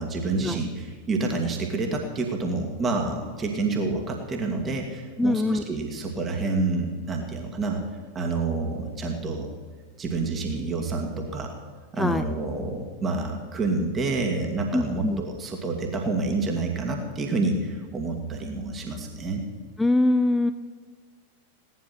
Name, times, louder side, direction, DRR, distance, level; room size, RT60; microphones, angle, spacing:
voice 1, 0.0-7.8 8.1-9.5 10.0-11.6 11.9-19.4, right 3 dB, 20° right, 2 dB, 2.1 m, -28 dB
voice 2, 5.2-5.6 12.0-12.2 14.7-15.2 19.8-20.5, left 2 dB, 5° left, 9 dB, 0.5 m, -23 dB
16.5 x 11.5 x 6.0 m, 1.5 s
figure-of-eight pair, 90°, 0 cm